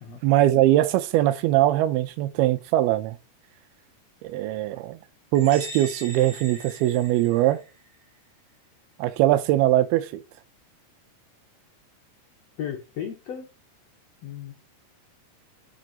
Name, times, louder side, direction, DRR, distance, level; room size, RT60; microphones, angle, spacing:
voice 1, 0.2-3.2 4.2-5.0 5.3-7.6 9.0-10.1, right 14 dB, 85° right, 2.5 m, -21 dB
sound 1, 5.3-7.9, right 1 dB, 45° right, 4.0 m, -40 dB
voice 2, 12.6-13.5 14.2-14.5, left 8 dB, 75° left, 1.5 m, -34 dB
11.0 x 4.4 x 4.0 m
omnidirectional pair, 4.6 m